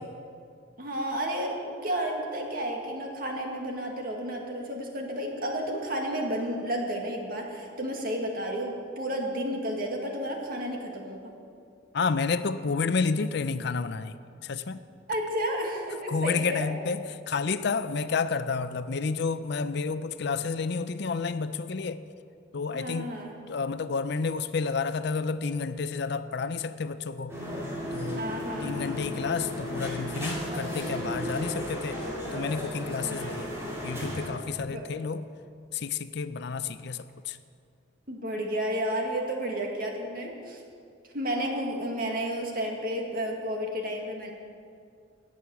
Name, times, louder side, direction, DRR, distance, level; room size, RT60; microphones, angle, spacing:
voice 1, 0.8-11.2 15.1-16.7 22.7-23.4 28.2-29.0 33.0-33.5 34.7-34.9 38.1-40.6 41.1-44.3, equal, 50° right, 1 dB, 1.9 m, -32 dB
voice 2, 11.9-14.1 14.4-14.8 16.1-22.0 22.5-23.1 23.5-27.3 27.9-28.2 28.6-32.0 32.3-33.5 33.8-35.2 35.7-37.4, left 4 dB, 60° left, 13 dB, 0.5 m, -30 dB
sound 1, 27.3-34.3, left 1 dB, 15° right, 3.7 m, -34 dB
18.5 x 6.3 x 7.1 m, 2.4 s
head